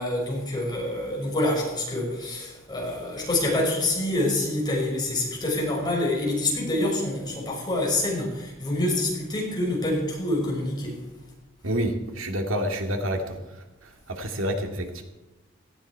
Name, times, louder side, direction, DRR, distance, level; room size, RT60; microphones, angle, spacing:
voice 1, 0.0-11.0, left 1 dB, 20° left, -2 dB, 5.8 m, -26 dB
voice 2, 11.6-13.4 14.1-15.0, equal, 75° right, 4 dB, 2.3 m, -28 dB
18.0 x 14.5 x 4.7 m, 1.1 s
head